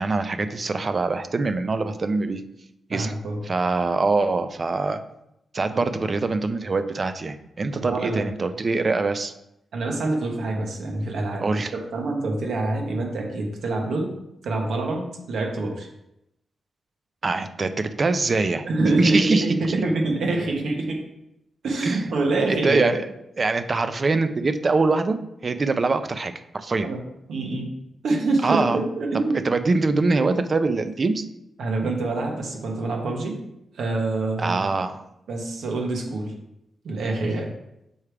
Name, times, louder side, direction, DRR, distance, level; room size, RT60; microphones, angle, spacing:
voice 1, 0.0-2.4 2.9-3.1 3.4-5.0 5.5-9.3 11.4-11.7 17.2-18.7 19.0-19.7 21.8-22.0 22.5-23.0 23.4-25.2 25.4-26.9 28.4-28.8 29.4-31.3 34.4-35.0, right 3 dB, 30° right, 10 dB, 0.4 m, -23 dB
voice 2, 2.9-3.4 5.7-5.8 6.6-6.7 7.7-8.3 9.7-11.4 11.7-14.1 14.4-15.9 18.6-21.0 21.6-23.0 26.8-27.0 27.3-27.7 28.0-29.4 31.6-33.4 33.7-34.7 35.3-36.3 36.8-37.5, right 2 dB, 75° right, 1 dB, 1.4 m, -26 dB
7.0 x 4.7 x 3.3 m, 0.84 s
wide cardioid pair, 175°, 0 cm